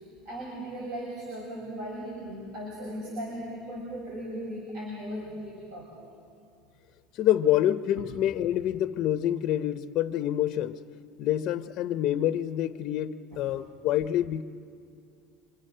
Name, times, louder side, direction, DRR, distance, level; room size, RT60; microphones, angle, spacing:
voice 1, 0.0-5.9 13.3-13.4, equal, 60° right, -2 dB, 6.7 m, -37 dB
voice 2, 7.1-10.8 11.2-14.4, left 12 dB, 45° left, 9 dB, 0.7 m, -27 dB
27.0 x 26.5 x 6.7 m, 2.4 s
cardioid pair, 145°, 0 cm